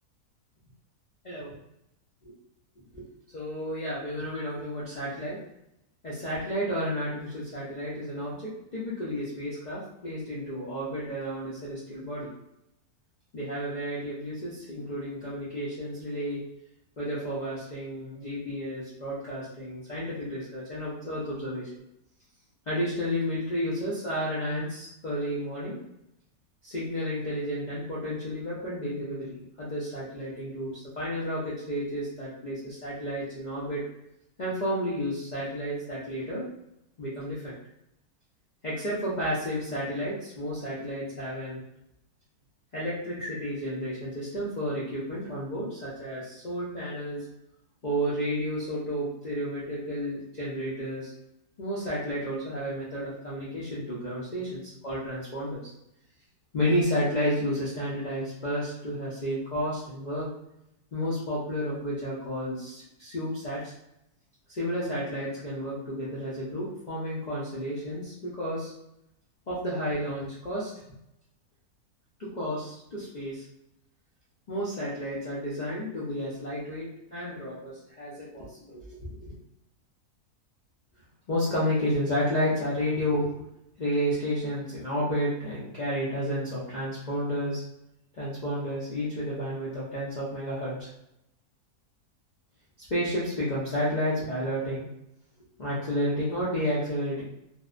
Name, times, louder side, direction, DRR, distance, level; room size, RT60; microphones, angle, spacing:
voice 1, 3.3-5.4 6.0-12.3 13.3-16.4 17.0-21.8 22.7-25.8 26.6-33.8 34.4-36.5 37.0-37.5 38.6-41.6 42.7-47.3 47.8-51.1 51.6-55.6 56.5-60.3 60.9-63.7 64.5-68.7 69.5-70.7 72.2-73.4 74.5-79.4 81.3-83.3 83.8-87.6 88.1-90.9 92.9-94.9 95.6-97.2, equal, 70° left, -8 dB, 0.4 m, -31 dB
2.6 x 2.1 x 2.4 m, 0.84 s
omnidirectional pair, 1.6 m